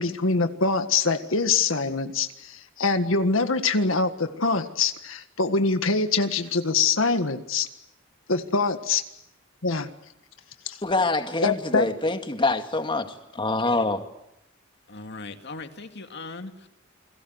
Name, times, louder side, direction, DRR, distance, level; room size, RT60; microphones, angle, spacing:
voice 1, 0.0-7.7 8.3-9.0 9.6-9.9 10.6-10.8 11.4-11.9, left 4 dB, 75° left, 8 dB, 1.7 m, -24 dB
voice 2, 10.8-13.1 13.3-14.0, left 2 dB, 25° left, 6 dB, 2.2 m, -25 dB
voice 3, 14.9-16.7, left 3 dB, 60° left, 6 dB, 2.3 m, -39 dB
29.0 x 22.5 x 8.0 m, 0.81 s
head